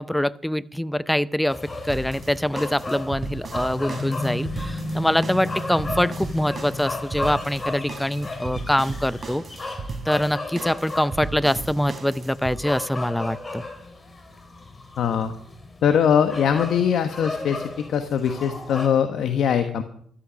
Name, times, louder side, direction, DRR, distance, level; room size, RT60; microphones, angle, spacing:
voice 1, 0.0-1.6 1.9-9.4 10.1-13.6, left 1 dB, 5° left, 18 dB, 0.6 m, -24 dB
sound 1, 1.5-18.9, left 2 dB, 25° left, 2.9 m, -34 dB
sound 2, 1.9-12.6, right 3 dB, 30° right, 3.2 m, -36 dB
voice 2, 15.0-15.3 15.8-19.8, left 8 dB, 70° left, 8 dB, 1.2 m, -21 dB
14.0 x 13.5 x 5.2 m, 0.62 s
cardioid pair, 90°, 0 cm